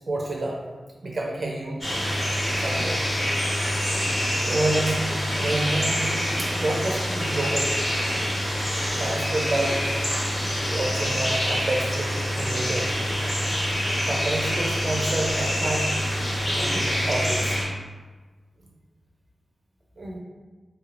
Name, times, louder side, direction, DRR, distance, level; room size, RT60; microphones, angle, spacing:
voice 1, 0.1-0.6 1.0-1.9 2.6-3.0 4.5-5.1 5.4-7.7 9.0-9.8 10.7-12.9 14.1-15.9 16.4-17.6 20.0-20.2, right 2 dB, 50° right, -2 dB, 0.5 m, -28 dB
sound 1, 1.8-17.6, equal, 35° left, 1.4 m, -26 dB
3.2 x 3.0 x 2.4 m, 1.3 s
wide cardioid pair, 80°, 0 cm